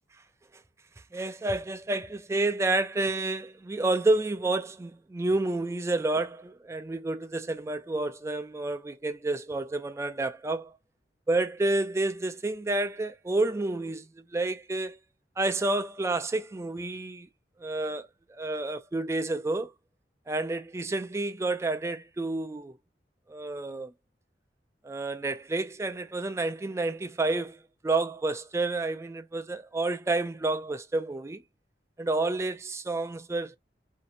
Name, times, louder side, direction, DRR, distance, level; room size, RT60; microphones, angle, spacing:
voice 1, 1.1-10.7 11.3-15.0 15.4-17.3 17.6-18.1 18.4-19.7 20.3-22.8 23.3-23.9 24.8-27.6 27.8-31.4 32.0-33.6, right 2 dB, 15° right, 0.3 m, -29 dB
2.6 x 2.1 x 2.5 m
head